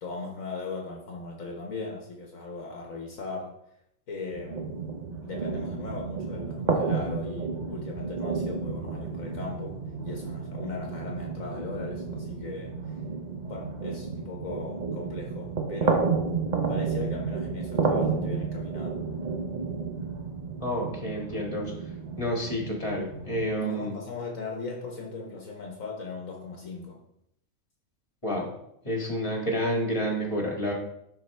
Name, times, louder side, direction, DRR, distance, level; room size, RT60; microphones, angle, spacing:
voice 1, 0.0-3.5 4.1-4.8 5.2-9.7 10.0-12.7 13.5-16.1 16.7-18.9 23.6-27.0, left 3 dB, 65° left, 0 dB, 1.5 m, -38 dB
sound 1, 4.3-23.5, right 4 dB, 40° right, 0.7 m, -31 dB
voice 2, 20.6-21.7 22.2-23.9 28.2-28.5 28.8-30.7, equal, 20° left, -1 dB, 1.9 m, -29 dB
10.5 x 4.6 x 3.3 m, 0.77 s
omnidirectional pair, 1.5 m